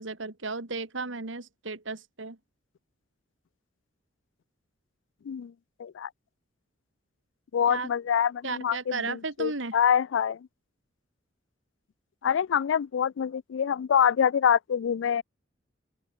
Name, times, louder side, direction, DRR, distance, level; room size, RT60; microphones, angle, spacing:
voice 1, 0.0-2.4 7.7-7.9 8.4-9.8, right 4 dB, 80° right, 2.1 m, -34 dB
voice 2, 5.8-6.1 7.5-10.4 12.2-15.2, left 8 dB, 75° left, 0.3 m, -25 dB
open air
head